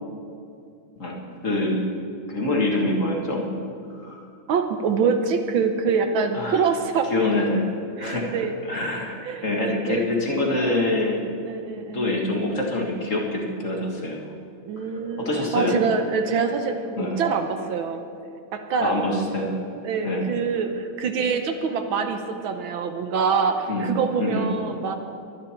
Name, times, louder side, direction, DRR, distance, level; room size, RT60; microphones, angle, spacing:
voice 1, 1.0-1.8 2.3-3.5 3.9-4.2 6.3-6.7 7.1-7.7 8.0-8.4 8.7-11.2 11.9-14.2 15.2-15.8 16.9-17.2 18.8-19.6 20.0-20.3 23.7-23.9 24.2-24.5, left 2 dB, 40° left, -1 dB, 1.9 m, -25 dB
voice 2, 4.5-7.1 8.0-8.5 9.2-10.1 10.6-11.1 11.4-12.2 14.6-18.0 18.5-18.9 19.8-24.9, right 5 dB, 70° right, 7 dB, 1.6 m, -25 dB
23.0 x 10.0 x 4.4 m, 2.5 s
omnidirectional pair, 2.4 m